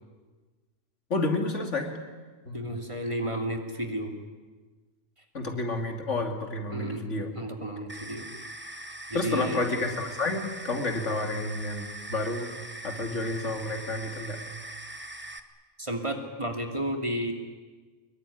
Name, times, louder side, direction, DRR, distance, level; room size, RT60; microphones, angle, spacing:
voice 1, 1.1-1.9 2.5-2.8 5.3-7.3 9.1-12.5 12.8-14.4, left 2 dB, 80° left, 4 dB, 3.0 m, -30 dB
voice 2, 2.5-4.1 6.7-7.1 7.3-8.3 9.1-9.6 15.8-17.3, right 1 dB, 25° right, 4 dB, 2.8 m, -32 dB
sound 1, 7.9-15.4, right 2 dB, 10° right, 1.4 m, -41 dB
25.0 x 22.0 x 10.0 m, 1.4 s
omnidirectional pair, 1.2 m